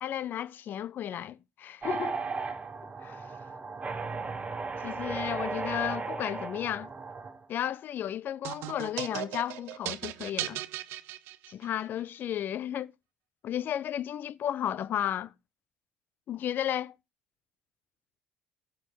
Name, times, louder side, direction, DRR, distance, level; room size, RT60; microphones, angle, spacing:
voice 1, 0.0-2.2 3.0-3.3 4.8-6.9 7.5-10.6 11.5-12.9 13.4-15.3 16.3-16.9, left 10 dB, 50° left, 0.6 m, -33 dB
sound 1, 1.8-7.4, right 4 dB, 30° right, 2.8 m, -35 dB
sound 2, 8.4-11.8, right 15 dB, 65° right, 0.8 m, -37 dB
15.0 x 7.8 x 3.9 m
hypercardioid pair, 65°, 4 cm